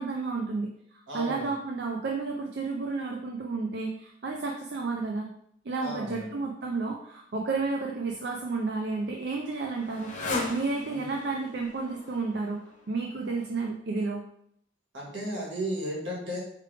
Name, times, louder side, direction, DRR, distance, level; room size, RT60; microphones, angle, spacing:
voice 1, 0.0-5.3 5.6-10.1 10.5-14.2, right 3 dB, 60° right, 1 dB, 0.5 m, -31 dB
voice 2, 1.1-1.5 5.8-6.4 14.9-16.4, equal, 80° right, -3 dB, 1.7 m, -34 dB
Motorcycle, 8.2-13.6, left 2 dB, 40° left, 0.8 m, -39 dB
4.7 x 3.3 x 3.3 m, 0.69 s
head